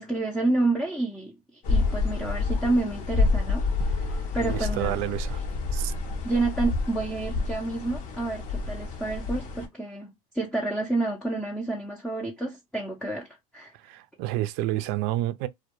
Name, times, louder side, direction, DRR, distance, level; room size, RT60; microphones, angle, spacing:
voice 1, 0.0-5.0 6.2-13.3 13.5-13.7, right 2 dB, ahead, 0.5 m, -29 dB
sound 1, 1.6-9.7, left 3 dB, 40° left, 0.7 m, -28 dB
voice 2, 4.4-5.4 5.7-5.9 13.9-15.5, right 15 dB, 55° right, 0.4 m, -29 dB
2.2 x 2.1 x 2.9 m
supercardioid pair, 115°, 20 cm